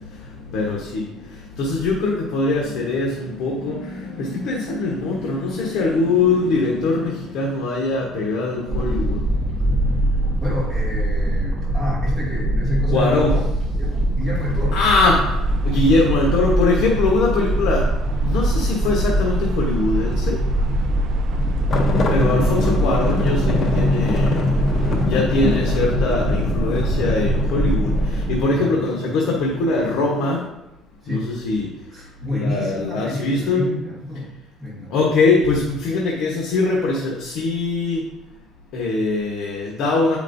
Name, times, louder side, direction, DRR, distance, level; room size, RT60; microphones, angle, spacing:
voice 1, 0.5-1.0 1.6-9.2 12.9-13.3 14.7-15.3 15.6-17.9 18.2-20.4 22.1-24.5 25.1-30.4 31.1-31.7 32.3-33.6 34.9-38.0 38.7-40.2, left 3 dB, 60° left, -2 dB, 1.0 m, -22 dB
sound 1, 8.7-28.4, right 1 dB, 25° right, 1.2 m, -22 dB
voice 2, 10.4-13.4 13.8-14.8 24.0-24.2 24.9-25.2 26.0-26.8 28.5-28.8 31.0-31.3 31.9-34.3 34.6-35.0, left 1 dB, 10° right, -7 dB, 2.2 m, -29 dB
sound 2, 15.2-25.1, right 4 dB, 50° right, 0.5 m, -38 dB
sound 3, 21.7-30.5, left 3 dB, 35° left, 0.7 m, -24 dB
7.8 x 5.1 x 2.6 m, 0.89 s
cardioid pair, 155°, 0 cm